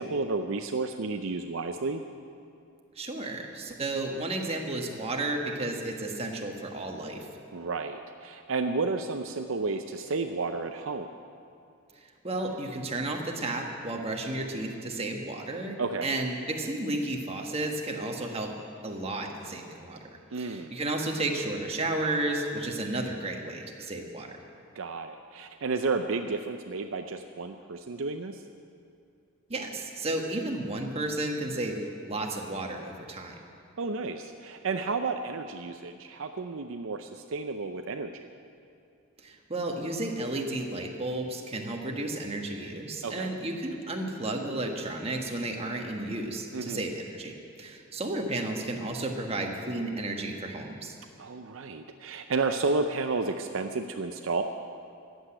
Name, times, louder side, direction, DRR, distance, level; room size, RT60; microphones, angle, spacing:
voice 1, 0.0-2.0 7.5-11.1 15.8-16.1 20.3-20.7 24.8-28.4 33.8-38.3 43.0-43.3 46.5-46.8 51.2-54.4, right 3 dB, 65° right, 6 dB, 0.6 m, -31 dB
voice 2, 2.9-7.3 12.0-18.5 18.8-20.0 20.4-24.3 29.5-33.4 39.2-47.3 47.6-51.0, right 2 dB, 30° right, 2 dB, 1.4 m, -33 dB
14.5 x 8.1 x 9.8 m, 2.5 s
head